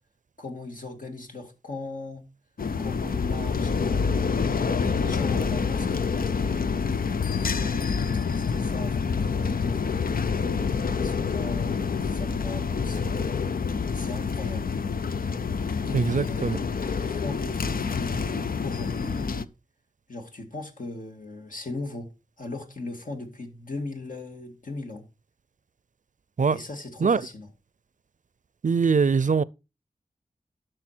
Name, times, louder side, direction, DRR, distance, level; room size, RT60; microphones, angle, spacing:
voice 1, 0.4-2.2 2.8-6.8 7.2-9.9 10.4-13.3 13.9-14.8 15.9-16.6 17.0-19.5 20.1-22.1 22.4-25.1 26.5-27.5, left 2 dB, 65° left, 2.4 m, -39 dB
sound 1, 2.6-19.4, left 5 dB, 80° left, 0.6 m, -27 dB
voice 2, 15.9-16.6 26.4-26.6 27.0-27.2 28.6-29.4, right 5 dB, 60° right, 0.5 m, -22 dB
12.0 x 6.6 x 4.4 m
wide cardioid pair, 45°, 15 cm